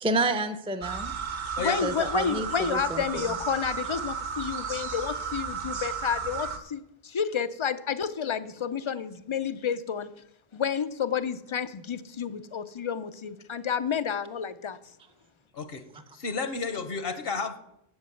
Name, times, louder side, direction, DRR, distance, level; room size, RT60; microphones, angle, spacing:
voice 1, 0.0-1.1 1.8-3.2, right 2 dB, 5° right, 8 dB, 0.5 m, -29 dB
sound 1, 0.8-6.6, right 6 dB, 50° right, 1.0 m, -34 dB
voice 2, 1.6-10.1 10.5-14.8, left 7 dB, 45° left, 13 dB, 0.4 m, -30 dB
voice 3, 16.1-17.6, left 4 dB, 70° left, 9 dB, 1.1 m, -31 dB
7.9 x 7.7 x 7.8 m, 0.80 s
omnidirectional pair, 1.0 m